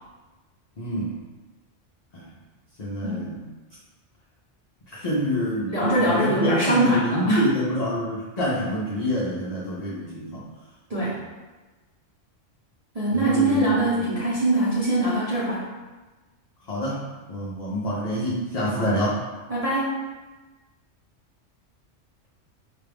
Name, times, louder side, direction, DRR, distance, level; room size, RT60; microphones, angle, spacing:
voice 1, 0.8-1.1 2.1-2.3 2.8-3.4 4.9-10.4 11.0-11.2 13.1-14.1 16.7-19.2, equal, 45° left, -6 dB, 0.5 m, -27 dB
voice 2, 5.7-7.4 10.9-11.2 12.9-15.7 18.7-18.9 19.5-20.0, right 1 dB, 40° right, -9 dB, 0.7 m, -23 dB
4.3 x 2.3 x 3.3 m, 1.2 s
omnidirectional pair, 1.2 m